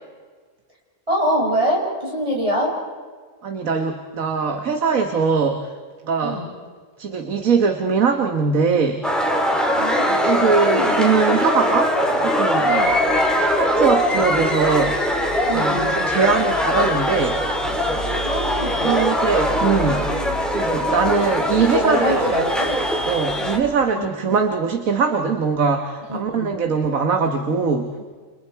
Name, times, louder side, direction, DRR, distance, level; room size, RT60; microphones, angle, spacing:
voice 1, 1.1-2.7 6.2-6.5 9.8-11.0 12.6-12.9 15.5-16.0 18.2-19.1 21.6-22.8 23.9-24.0 26.1-26.6, equal, 25° right, -3 dB, 6.9 m, -24 dB
voice 2, 3.4-5.7 6.0-6.4 7.0-9.1 10.1-12.7 13.4-15.0 15.5-17.4 18.8-20.1 20.5-22.3 23.1-27.9, right 5 dB, 80° right, 5 dB, 1.8 m, -21 dB
sound 1, 9.0-23.6, equal, ahead, 3.3 m, -21 dB
sound 2, 12.7-23.7, left 1 dB, 65° left, 2.3 m, -36 dB
29.5 x 29.5 x 4.7 m, 1.5 s
omnidirectional pair, 1.4 m